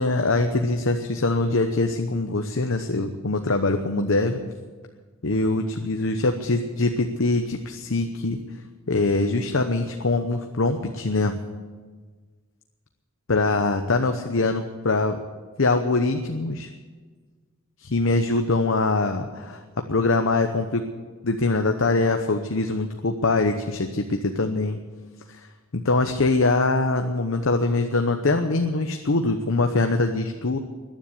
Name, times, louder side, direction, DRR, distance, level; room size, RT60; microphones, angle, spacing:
voice 1, 0.0-4.4 5.2-8.4 8.9-11.3 13.3-15.2 15.6-16.7 17.8-19.6 19.9-20.8 21.2-24.8 25.3-25.4 25.7-30.6, left 3 dB, 75° left, 6 dB, 0.9 m, -23 dB
14.5 x 10.5 x 8.4 m, 1.4 s
head